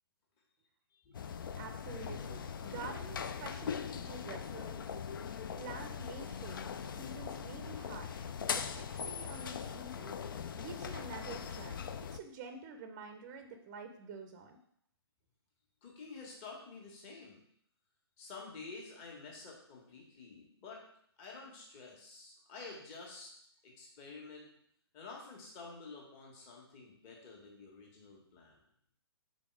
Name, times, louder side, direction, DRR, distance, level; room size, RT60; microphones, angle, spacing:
voice 1, 0.9-1.3 15.8-17.4 18.2-20.8 21.2-23.3 23.6-24.5 24.9-28.6, left 4 dB, 30° left, -1 dB, 1.6 m, -50 dB
sound 1, 1.1-12.2, left 7 dB, 55° left, 0.4 m, -41 dB
voice 2, 1.6-4.9 5.6-10.1 10.5-11.8 12.1-14.6, right 4 dB, 25° right, 6 dB, 0.6 m, -48 dB
5.1 x 4.2 x 4.7 m, 0.68 s
figure-of-eight pair, 130°, 14 cm